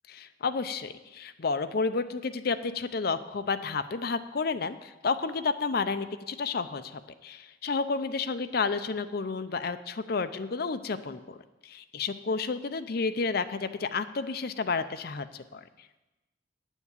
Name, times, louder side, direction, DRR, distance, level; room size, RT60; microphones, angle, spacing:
voice 1, 0.1-11.4 11.6-15.6, left 4 dB, 60° left, 11 dB, 0.6 m, -31 dB
9.0 x 7.2 x 8.3 m, 1.1 s
head